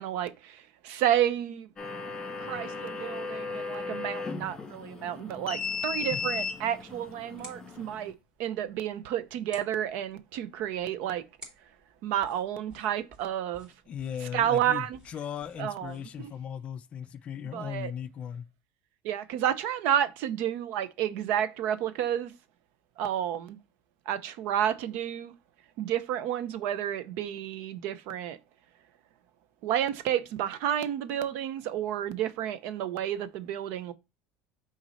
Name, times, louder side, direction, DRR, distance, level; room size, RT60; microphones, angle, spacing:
voice 1, 0.0-1.7 2.4-8.1 8.4-11.2 12.0-13.7 14.3-15.0 15.6-16.3 17.5-17.9 19.0-22.3 23.0-23.6 24.1-25.3 25.8-28.4 29.6-33.9, right 10 dB, 70° right, 0.7 m, -30 dB
sound 1, 1.8-8.1, left 4 dB, 20° left, 2.1 m, -36 dB
sound 2, 6.3-16.3, right 1 dB, 25° right, 3.2 m, -56 dB
voice 2, 13.9-18.5, left 8 dB, 35° left, 0.4 m, -37 dB
6.2 x 3.9 x 4.1 m
cardioid pair, 130°, 3 cm